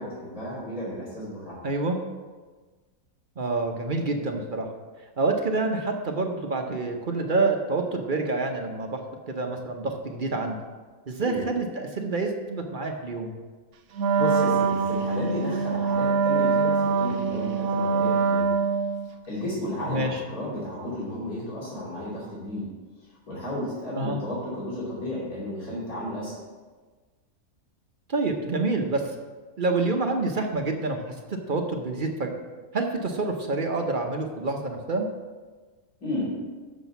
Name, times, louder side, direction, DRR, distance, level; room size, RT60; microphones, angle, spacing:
voice 1, 0.0-1.6 11.2-11.4 14.2-18.5 19.3-22.7 23.3-26.3 36.0-36.4, left 1 dB, 90° left, -8 dB, 3.2 m, -33 dB
voice 2, 1.6-2.0 3.4-4.7 5.2-9.0 9.3-10.6 11.1-13.3 19.9-20.2 23.9-24.2 28.1-29.1 29.6-31.0 31.3-32.3 32.7-35.1, right 3 dB, 45° right, 3 dB, 0.8 m, -27 dB
Wind instrument woodwind instrument, 13.9-19.1, right 5 dB, 80° right, 1.1 m, -24 dB
7.2 x 6.0 x 6.9 m, 1.4 s
omnidirectional pair, 1.5 m